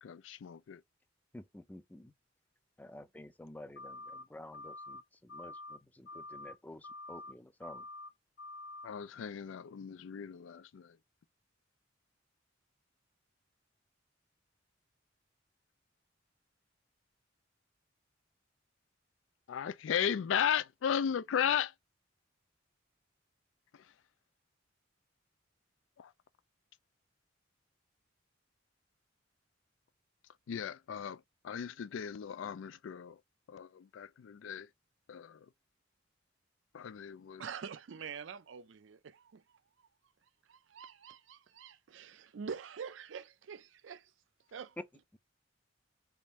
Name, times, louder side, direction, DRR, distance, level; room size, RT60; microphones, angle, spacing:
voice 1, 0.0-0.8 8.8-11.0 19.5-21.7 23.7-23.9 26.0-26.1 30.5-33.2 33.5-34.7 35.1-35.5 36.7-37.4, left 8 dB, 80° left, 0.4 m, -36 dB
voice 2, 1.3-2.1 2.8-7.9 44.8-44.9 45.1-45.2, left 1 dB, 10° left, 0.4 m, -50 dB
sound 1, 3.8-4.2 4.5-5.0 5.3-5.8 6.1-6.5 6.8-7.3 7.6-8.1 8.4-8.9, left 2 dB, 50° left, 0.9 m, -47 dB
voice 3, 37.4-39.4 40.5-44.1 44.5-44.7, right 6 dB, 75° right, 0.4 m, -45 dB
3.5 x 2.5 x 4.2 m
head